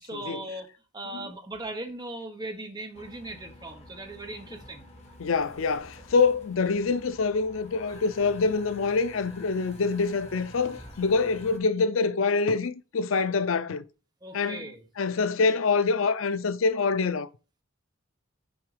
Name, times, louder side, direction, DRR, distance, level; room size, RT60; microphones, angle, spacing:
voice 1, 0.1-0.7 0.9-4.9 14.2-14.8, right 2 dB, 20° right, 1.1 m, -38 dB
Marine cranes moving at sea, 2.9-11.6, left 1 dB, 35° left, 1.7 m, -49 dB
voice 2, 5.2-13.8 14.3-14.6 15.0-17.3, left 4 dB, 80° left, 0.5 m, -25 dB
6.4 x 4.6 x 4.9 m
head